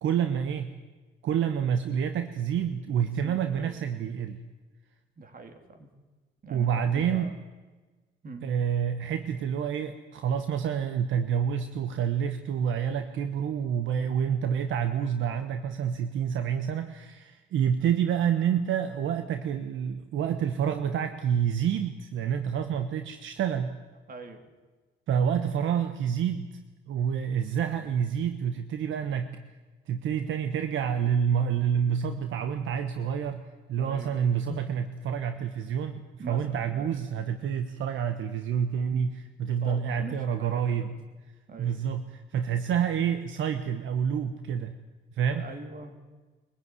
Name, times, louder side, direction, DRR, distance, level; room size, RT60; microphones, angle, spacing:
voice 1, 0.0-0.7 1.2-4.4 6.5-7.3 8.4-23.7 25.1-26.5 26.9-29.4 29.9-33.4 33.7-39.1 39.4-40.9 41.6-44.7 45.1-45.4, right 8 dB, 75° right, 8 dB, 1.2 m, -28 dB
voice 2, 2.9-3.8 5.2-5.9 6.4-7.3 8.2-8.5 24.1-24.4 33.8-34.6 36.2-36.9 38.9-39.0 39.6-41.0 41.5-41.8 45.2-45.9, right 3 dB, 45° right, 6 dB, 3.4 m, -43 dB
22.5 x 15.0 x 9.7 m, 1.3 s
cardioid pair, 90°, 20 cm